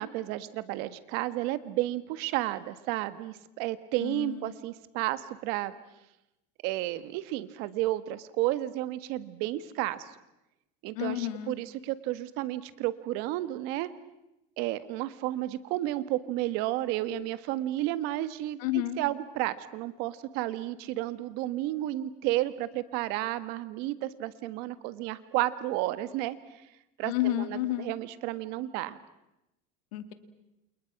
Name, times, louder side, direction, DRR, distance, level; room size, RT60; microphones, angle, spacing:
voice 1, 0.0-5.7 6.6-10.0 10.8-13.9 14.6-18.6 19.0-26.4 27.0-29.0, right 15 dB, 60° right, 14 dB, 1.5 m, -32 dB
voice 2, 4.0-4.6 10.9-11.5 18.6-19.0 27.0-27.9 29.9-30.1, left 14 dB, 85° left, 11 dB, 2.4 m, -31 dB
29.5 x 28.5 x 6.0 m, 0.90 s
cardioid pair, 160°, 19 cm